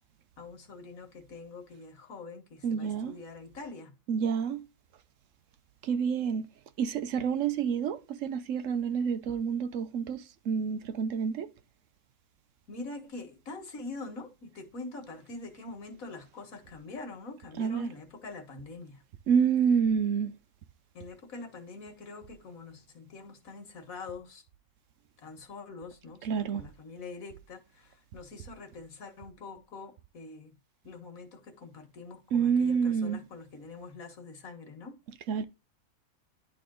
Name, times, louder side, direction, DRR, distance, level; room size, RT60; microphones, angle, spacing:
voice 1, 0.4-3.9 12.7-19.0 20.9-24.4 25.2-30.5 30.8-35.0, left 3 dB, 80° left, 2.0 m, -44 dB
voice 2, 2.6-3.2 4.1-4.7 5.8-6.5 6.8-11.5 17.6-17.9 19.3-20.3 26.2-26.6 32.3-33.2 35.3-35.4, right 7 dB, 70° right, 1.0 m, -28 dB
10.5 x 3.8 x 3.8 m
omnidirectional pair, 1.4 m